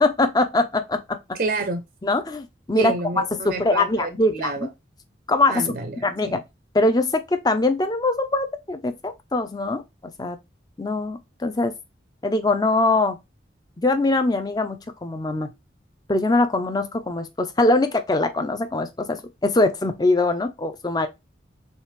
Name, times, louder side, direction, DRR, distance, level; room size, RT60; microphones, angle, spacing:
voice 1, 0.0-1.2 2.0-2.9 3.3-4.5 5.3-5.6 6.0-6.4 6.7-9.8 10.2-10.4 10.8-11.7 12.2-13.2 13.8-15.5 16.1-21.1, left 2 dB, 20° left, 0.6 m, -22 dB
voice 2, 1.3-1.8 2.7-4.7 5.5-6.4, right 3 dB, 50° right, 0.6 m, -29 dB
6.4 x 2.4 x 3.2 m
head